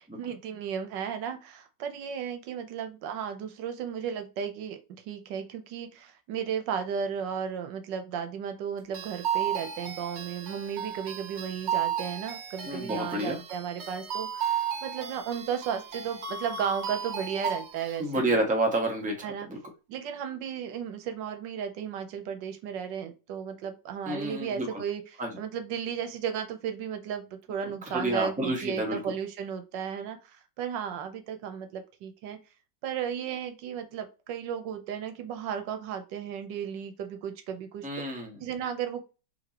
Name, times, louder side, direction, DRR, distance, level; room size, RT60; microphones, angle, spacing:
voice 1, 0.0-4.8 5.1-18.4 19.2-19.5 19.9-32.4 32.8-38.0 38.4-39.1, right 8 dB, 80° right, 8 dB, 1.4 m, -34 dB
sound 1, 8.9-18.0, right 8 dB, 60° right, 0.7 m, -34 dB
voice 2, 12.7-13.4 18.0-19.6 24.1-24.7 25.2-25.3 27.9-29.0 37.8-38.4, right 1 dB, 5° right, 1 dB, 0.9 m, -29 dB
5.7 x 2.9 x 2.9 m, 0.31 s
omnidirectional pair, 1.9 m